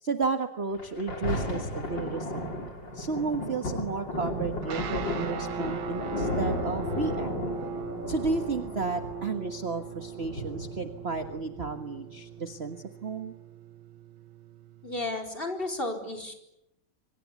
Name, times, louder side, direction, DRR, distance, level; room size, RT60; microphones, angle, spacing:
voice 1, 0.0-2.7 2.9-7.4 8.1-13.3, right 4 dB, 35° right, 7 dB, 1.5 m, -33 dB
Thunder, 0.7-11.7 12.4-12.5, left 1 dB, 55° left, 5.0 m, -34 dB
sound 1, 4.6-15.1, right 6 dB, 65° right, 2.3 m, -39 dB
voice 2, 14.8-16.3, left 2 dB, 25° left, 3 dB, 4.6 m, -33 dB
26.5 x 25.5 x 8.4 m, 0.85 s
omnidirectional pair, 2.4 m